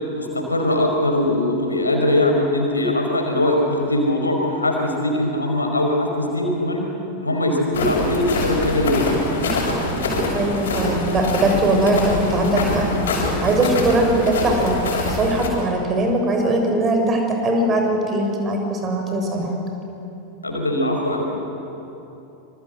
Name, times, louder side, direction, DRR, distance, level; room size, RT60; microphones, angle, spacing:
voice 1, 0.1-6.8 7.2-9.0 9.3-9.4 20.4-21.3, left 1 dB, 80° left, 2 dB, 4.9 m, -21 dB
sound 1, 7.7-15.5, left 2 dB, 60° left, 7.0 m, -24 dB
voice 2, 10.3-12.9 13.4-14.8 15.1-19.5, right 1 dB, 25° right, 2 dB, 6.9 m, -20 dB
27.0 x 25.5 x 8.1 m, 3.0 s
figure-of-eight pair, 90°, 0 cm